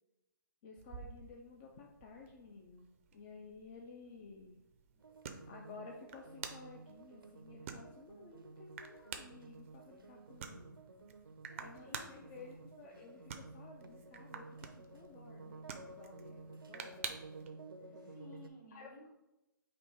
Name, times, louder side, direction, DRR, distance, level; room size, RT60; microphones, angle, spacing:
voice 1, 0.6-4.6 5.5-10.8 11.6-14.5 14.8-17.2 18.7-18.9, left 4 dB, 25° left, 2 dB, 0.4 m, -54 dB
sound 1, 0.8-17.5, right 7 dB, 35° right, 0.5 m, -51 dB
voice 2, 4.5-5.1 11.5-12.7 15.3-15.8 16.0-16.4 17.9-19.1, left 2 dB, 50° left, -1 dB, 1.6 m, -59 dB
sound 2, 5.0-18.5, right 3 dB, 90° right, 0.6 m, -53 dB
4.2 x 2.7 x 4.7 m, 0.93 s
hypercardioid pair, 150°, 11 cm